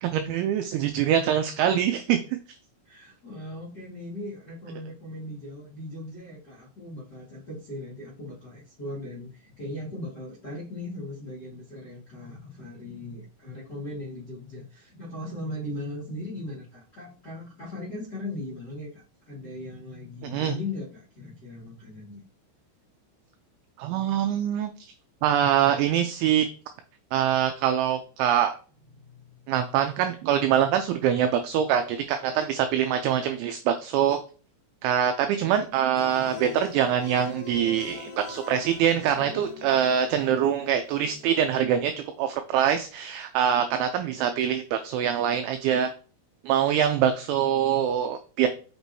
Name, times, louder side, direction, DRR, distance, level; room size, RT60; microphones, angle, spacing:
voice 1, 0.0-2.2 20.2-20.5 23.8-24.7 25.2-26.5 27.1-28.6 29.5-34.2 34.8-41.9 42.2-45.9 46.4-48.5, right 9 dB, 90° right, 7 dB, 2.6 m, -24 dB
voice 2, 2.8-22.2 28.9-29.1, left 1 dB, 65° left, -6 dB, 1.0 m, -38 dB
sound 1, 35.9-41.2, left 3 dB, 85° left, 1.4 m, -42 dB
6.2 x 5.9 x 2.7 m, 0.38 s
omnidirectional pair, 6.0 m